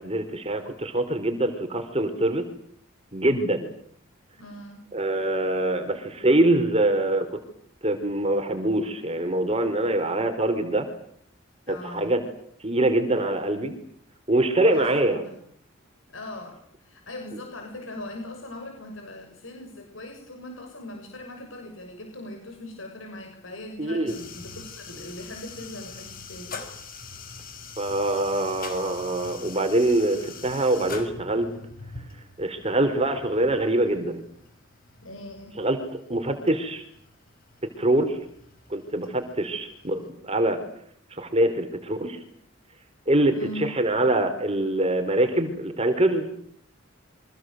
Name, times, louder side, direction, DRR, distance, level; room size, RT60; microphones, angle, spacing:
voice 1, 0.0-2.4 3.1-3.7 4.9-7.4 7.8-10.9 11.7-12.2 12.6-13.7 14.3-15.2 23.8-24.2 27.8-31.5 32.4-34.2 35.6-36.8 37.8-38.2 38.7-40.6 41.1-42.2 43.1-46.3, right 1 dB, 30° right, 7 dB, 4.2 m, -24 dB
voice 2, 4.3-4.8 11.7-12.2 14.6-15.4 16.1-26.6 35.0-35.6 43.3-43.7, left 1 dB, 80° left, 4 dB, 6.8 m, -40 dB
sound 1, 24.1-40.1, left 4 dB, 45° left, 6.0 m, -43 dB
29.5 x 25.0 x 8.0 m, 0.63 s
head